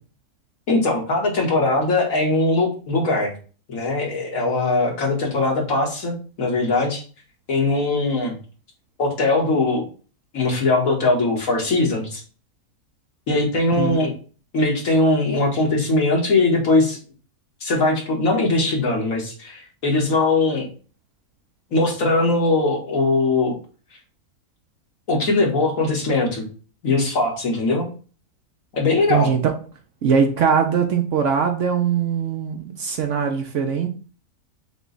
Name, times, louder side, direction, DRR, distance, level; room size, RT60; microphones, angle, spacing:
voice 1, 0.7-3.3 3.7-7.0 7.5-8.4 9.0-9.8 10.3-12.2 13.3-14.1 14.5-17.0 17.6-20.7 21.7-23.6 25.1-26.5 26.8-27.9 28.7-29.3, left 2 dB, 65° left, 1.8 m, -20 dB
voice 2, 29.1-29.5 30.0-33.9, right 7 dB, 60° right, 0.9 m, -21 dB
6.0 x 2.3 x 3.8 m
omnidirectional pair, 1.6 m